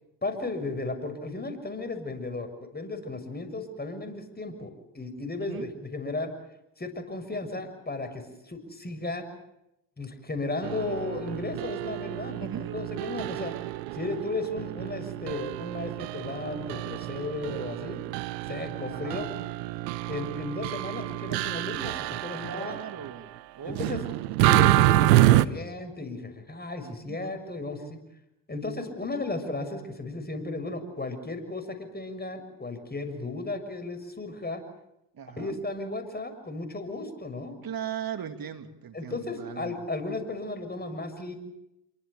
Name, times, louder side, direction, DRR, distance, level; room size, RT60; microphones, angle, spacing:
voice 1, 0.2-6.3 6.8-9.2 10.0-13.5 13.9-18.0 18.5-19.3 20.1-22.8 23.6-24.0 24.5-28.0 28.5-34.6 35.4-37.5 38.9-41.4, left 2 dB, 20° left, 7 dB, 6.8 m, -35 dB
sound 1, 10.6-23.1 23.7-25.4, right 17 dB, 80° right, 1.1 m, -27 dB
voice 2, 12.3-12.8 18.9-19.2 22.4-24.1 26.8-27.4 35.1-35.6 37.6-39.7, right 9 dB, 45° right, 8 dB, 2.7 m, -39 dB
27.0 x 24.0 x 6.9 m, 0.86 s
hypercardioid pair, 60°, 49 cm